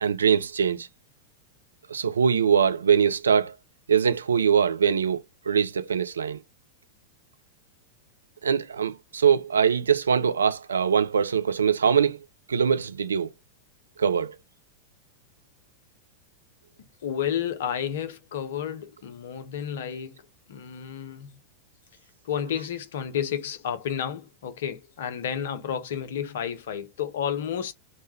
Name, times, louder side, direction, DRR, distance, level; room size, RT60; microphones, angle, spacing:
voice 1, 0.0-0.9 1.9-3.5 3.9-6.4 8.4-12.2 12.5-13.3 14.0-14.4, right 7 dB, 70° right, 0.3 m, -22 dB
voice 2, 17.0-20.2 20.5-21.3 22.2-27.7, left 9 dB, 60° left, 0.5 m, -31 dB
3.2 x 2.1 x 3.0 m
figure-of-eight pair, 90°, 0 cm